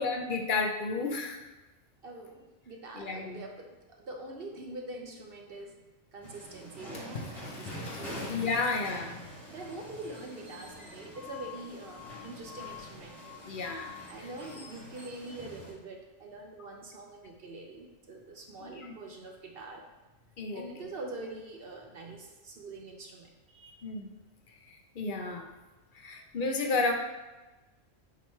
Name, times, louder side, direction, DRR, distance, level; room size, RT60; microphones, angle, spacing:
voice 1, 0.0-1.4 3.0-3.4 8.3-9.3 13.5-14.0 18.6-18.9 20.4-20.6 23.8-24.1 25.0-25.5 26.0-26.9, left 3 dB, 55° left, 3 dB, 0.6 m, -31 dB
voice 2, 2.0-5.8 6.1-8.9 9.5-13.2 14.1-19.9 20.5-23.9, right 2 dB, 55° right, 1 dB, 0.8 m, -44 dB
sound 1, 6.2-15.7, left 1 dB, ahead, 1.8 m, -45 dB
Water / Splash splatter, 6.9-9.0, left 3 dB, 85° left, 1.3 m, -45 dB
6.8 x 3.1 x 4.4 m, 1.1 s
omnidirectional pair, 1.4 m